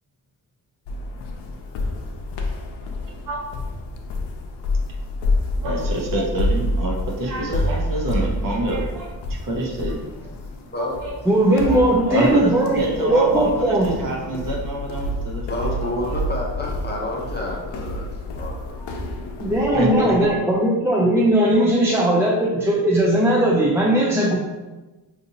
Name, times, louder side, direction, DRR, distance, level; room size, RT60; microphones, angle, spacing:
sound 1, 0.9-20.4, left 1 dB, 85° left, 0.6 m, -28 dB
voice 1, 5.6-9.1 9.4-10.0 10.8-11.2 11.7-11.8 12.1-15.5 15.8-16.2 19.7-20.3 21.6-21.7, right 1 dB, 55° right, -1 dB, 0.8 m, -26 dB
voice 2, 11.3-14.0 19.4-24.4, right 1 dB, 5° right, -4 dB, 0.3 m, -18 dB
voice 3, 15.5-18.1 18.3-19.0, left 1 dB, 25° left, -2 dB, 0.7 m, -29 dB
3.9 x 2.5 x 2.7 m, 1.1 s
cardioid pair, 95°, 40 cm